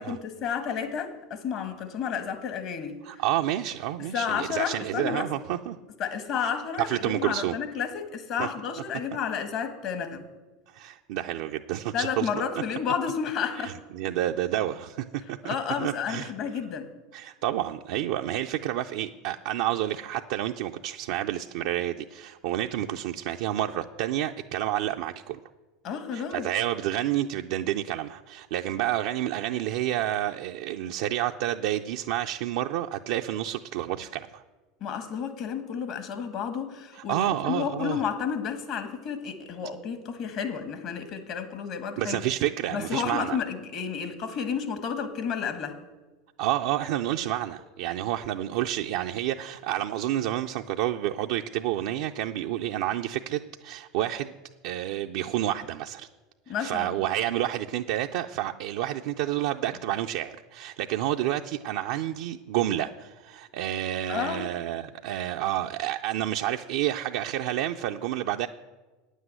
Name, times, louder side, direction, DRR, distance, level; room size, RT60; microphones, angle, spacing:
voice 1, 0.0-3.0 4.0-5.3 6.0-10.3 11.9-13.8 15.4-16.9 25.8-26.5 34.8-42.2 42.7-45.8 56.5-56.9 64.1-64.4, left 7 dB, 55° left, 9 dB, 1.5 m, -31 dB
voice 2, 3.0-5.8 6.4-6.5 6.8-7.5 8.4-8.5 10.7-12.3 13.6-16.3 17.1-25.4 26.1-34.4 37.1-38.0 42.0-43.4 46.4-54.3 54.6-56.1 56.6-68.5, right 12 dB, 70° right, 3 dB, 0.4 m, -29 dB
9.3 x 8.2 x 7.7 m, 1.2 s
hypercardioid pair, 95°, 0 cm